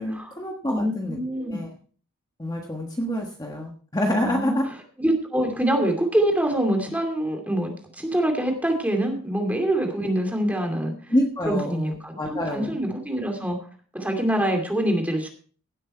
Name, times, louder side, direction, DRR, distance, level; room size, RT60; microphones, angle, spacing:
voice 1, 0.0-1.7 2.4-4.6 11.1-12.8, equal, 15° left, 1 dB, 1.4 m, -27 dB
voice 2, 0.6-1.6 4.2-10.9 11.4-13.7 13.9-15.3, right 1 dB, 5° right, 3 dB, 2.5 m, -25 dB
17.0 x 7.7 x 4.5 m, 0.43 s
head